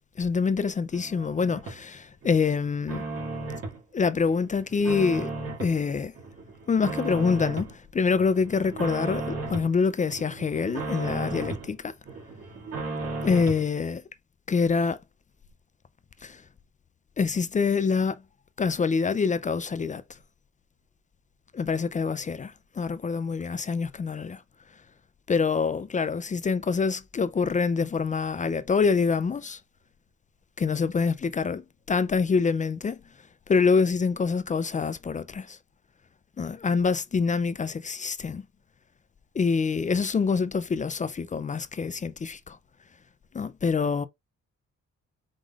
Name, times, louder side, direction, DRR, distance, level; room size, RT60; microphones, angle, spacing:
voice 1, 0.2-3.1 3.9-5.3 5.6-6.1 6.7-11.9 13.2-14.0 14.5-15.0 16.2-16.4 17.2-18.2 18.6-20.0 21.5-24.4 25.3-29.6 30.6-33.0 33.5-35.6 36.4-38.4 39.4-42.6 43.3-44.1, left 5 dB, 25° left, 0.4 m, -26 dB
sound 1, 0.9-1.8 2.2-3.8 4.2-5.8 6.1-7.7 8.1-9.7 10.1-11.7 12.1-13.6, right 2 dB, 50° right, 2.1 m, -35 dB
4.9 x 3.7 x 2.4 m
cardioid pair, 115°, 30 cm